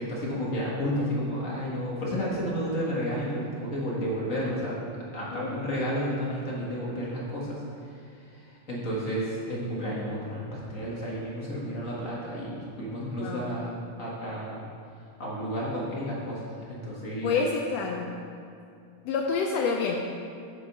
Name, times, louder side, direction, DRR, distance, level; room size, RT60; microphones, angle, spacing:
voice 1, 0.0-4.8 5.1-13.7 14.0-14.6 15.2-17.5, equal, 40° left, -6 dB, 1.2 m, -32 dB
voice 2, 5.3-5.8 13.2-13.4 17.2-18.1 19.0-20.0, left 5 dB, 80° left, 1 dB, 1.4 m, -28 dB
8.2 x 6.2 x 5.4 m, 2.4 s
omnidirectional pair, 3.5 m